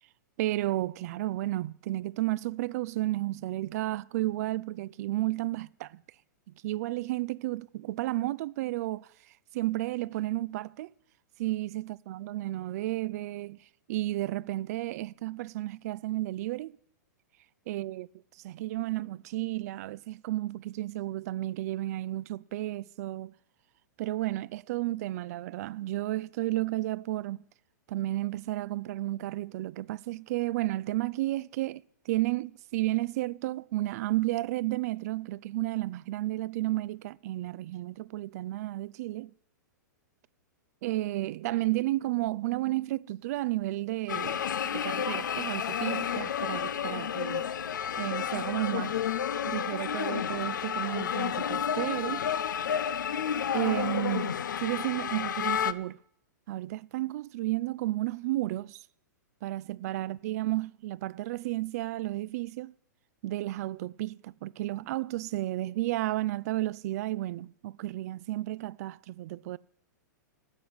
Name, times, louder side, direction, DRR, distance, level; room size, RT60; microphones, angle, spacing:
voice 1, 0.4-6.0 6.5-9.1 9.5-10.9 11.4-13.6 13.9-16.7 17.7-18.1 18.4-23.3 24.0-27.4 27.9-39.3 40.8-44.4 44.7-47.4 48.0-49.0 49.5-52.3 53.5-56.0 56.5-58.8 59.4-62.7 63.2-69.6, right 17 dB, 55° right, 0.4 m, -32 dB
sound 1, 44.1-55.7, left 8 dB, 80° left, 0.6 m, -31 dB
12.5 x 7.8 x 9.4 m
hypercardioid pair, 125°, 10 cm